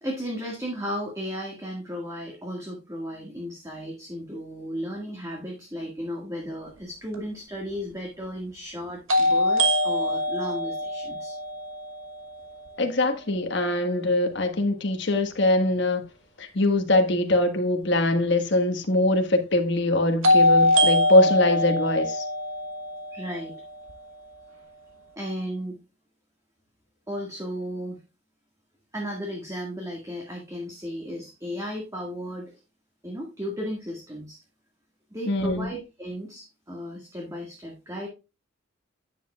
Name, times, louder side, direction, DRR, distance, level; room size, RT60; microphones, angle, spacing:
voice 1, 0.0-11.4 23.1-23.5 25.1-25.8 27.1-28.0 28.9-32.5 33.0-34.4 35.1-38.1, equal, 15° right, 1.7 m, -35 dB
sound 1, 7.1-7.2 9.1-13.0 20.2-24.3, left 1 dB, 85° right, 1.2 m, -24 dB
voice 2, 12.8-16.0 16.4-22.2 35.3-35.7, left 1 dB, 60° left, 1.5 m, -22 dB
9.6 x 7.4 x 2.3 m
head